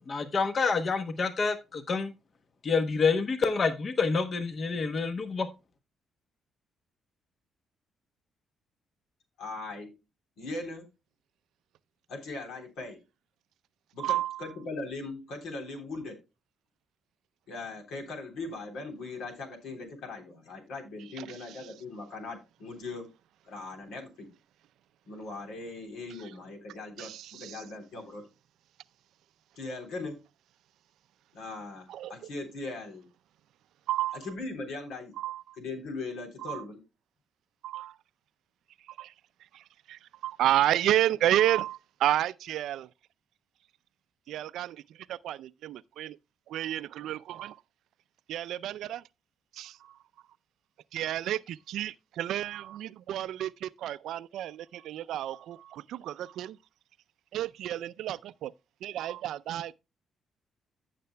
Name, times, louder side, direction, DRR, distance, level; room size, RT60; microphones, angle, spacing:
voice 1, 0.1-2.1 2.6-5.5, left 4 dB, 45° left, 0.9 m, -28 dB
voice 2, 9.4-9.9 10.4-10.9 12.1-13.0 13.9-16.1 17.5-23.1 23.4-24.3 25.1-28.2 29.6-30.2 31.3-33.1 34.1-35.1 35.5-36.8, left 3 dB, 85° left, 3.4 m, -39 dB
voice 3, 14.0-14.4 27.0-27.1 32.0-32.1 33.9-34.2 35.2-35.4 36.5-36.6 37.6-37.9 39.0-39.1 40.2-42.9 44.3-44.8 45.2-46.1 46.5-47.5 48.3-49.0 49.6-49.7 50.9-51.4 51.7-55.6 55.9-56.5 57.3-58.5 58.8-59.7, right 12 dB, 80° right, 0.4 m, -30 dB
15.0 x 6.7 x 2.2 m
cardioid pair, 90°, 0 cm